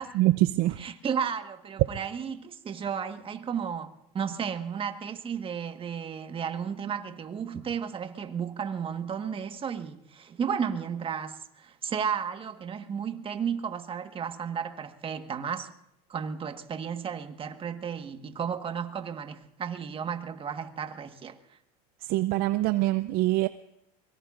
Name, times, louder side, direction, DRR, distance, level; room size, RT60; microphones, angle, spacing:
voice 1, 0.1-0.8 22.0-23.5, right 17 dB, 50° right, 0.6 m, -24 dB
voice 2, 0.8-15.7 16.1-21.6, right 7 dB, 25° right, 1.5 m, -33 dB
24.0 x 22.5 x 2.5 m
supercardioid pair, 115°, 20 cm